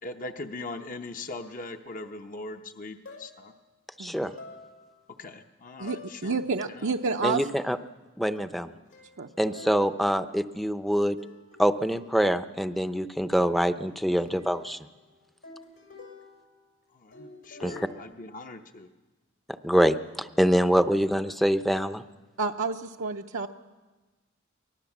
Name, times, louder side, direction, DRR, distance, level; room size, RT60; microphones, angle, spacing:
voice 1, 0.0-3.5 5.2-6.9 16.9-18.9, left 2 dB, 40° left, 6 dB, 0.9 m, -40 dB
sound 1, 3.0-3.5 4.1-5.1 5.9-6.2 6.6-7.1 8.3-10.9 11.2-12.6 13.8-16.8 17.1-18.0, left 3 dB, 80° left, 6.3 m, -49 dB
voice 2, 4.0-4.3 7.2-7.8 8.2-8.7 9.4-11.2 11.6-14.8 17.6-17.7 19.6-22.0, equal, ahead, 11 dB, 0.6 m, -25 dB
voice 3, 6.2-7.4 9.2-9.3 22.4-23.5, right 4 dB, 70° right, 2 dB, 0.7 m, -29 dB
24.5 x 19.0 x 7.3 m, 1.3 s
head